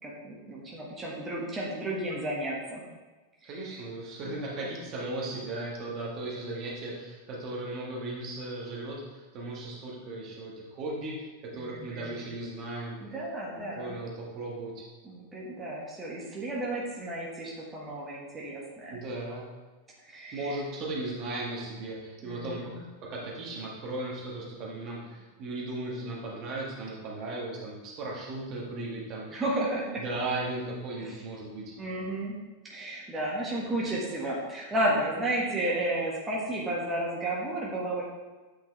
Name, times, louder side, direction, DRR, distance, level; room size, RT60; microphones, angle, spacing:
voice 1, 0.0-2.8 3.4-3.6 11.5-12.2 13.0-14.0 15.0-19.0 20.1-20.5 22.2-22.8 29.3-30.0 31.0-31.1 31.8-32.3 32.7-38.0, right 1 dB, 15° right, -5 dB, 1.4 m, -32 dB
voice 2, 3.4-13.0 13.7-14.8 18.9-19.5 20.3-22.7 23.0-29.2 30.0-31.7, right 2 dB, 35° right, -3 dB, 1.5 m, -36 dB
8.4 x 4.4 x 3.3 m, 1.3 s
figure-of-eight pair, 90°, 0 cm